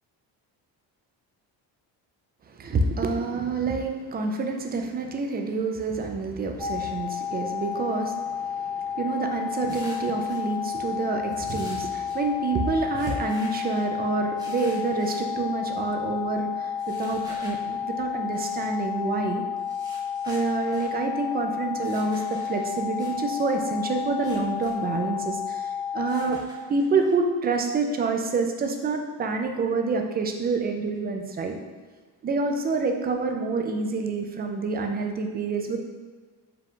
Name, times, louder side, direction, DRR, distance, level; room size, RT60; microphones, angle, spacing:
voice 1, 2.5-19.4 20.2-26.4 26.7-31.5 32.2-35.8, right 3 dB, 25° right, 4 dB, 0.3 m, -27 dB
sound 1, 6.6-26.3, left 7 dB, 60° left, 1.1 m, -31 dB
sound 2, 9.7-10.4 11.3-12.2 12.9-13.9 14.4-15.2 16.8-17.6 18.3-18.5 19.6-20.9 21.8-23.1 24.1-24.7 25.0-25.1 26.0-27.1, right 1 dB, 10° right, 0.9 m, -47 dB
4.8 x 2.3 x 3.6 m, 1.4 s
cardioid pair, 115°, 43 cm